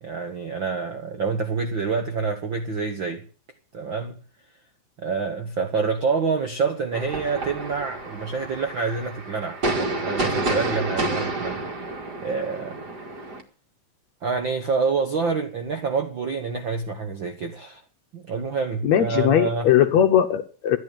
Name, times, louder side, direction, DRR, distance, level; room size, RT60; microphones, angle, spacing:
voice 1, 0.0-3.2 3.7-4.2 5.0-11.6 12.2-12.8 14.2-17.8 18.1-19.8, right 5 dB, 65° right, 1.2 m, -27 dB
sound 1, 6.9-13.4, right 2 dB, 35° right, 2.0 m, -29 dB
voice 2, 18.8-20.8, left 10 dB, 70° left, 1.7 m, -19 dB
13.0 x 10.5 x 8.9 m
omnidirectional pair, 4.0 m